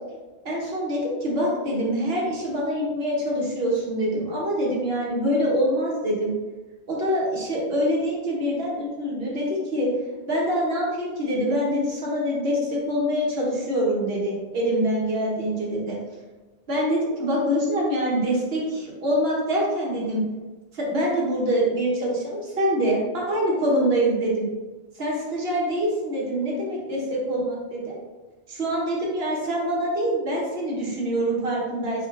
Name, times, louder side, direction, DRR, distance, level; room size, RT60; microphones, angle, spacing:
voice 1, 0.4-6.3 6.9-9.9 10.3-16.0 16.7-20.2 20.7-24.5 24.9-28.0 28.5-32.1, equal, 80° right, -4 dB, 1.4 m, -25 dB
4.7 x 4.1 x 2.5 m, 1.2 s
omnidirectional pair, 1.0 m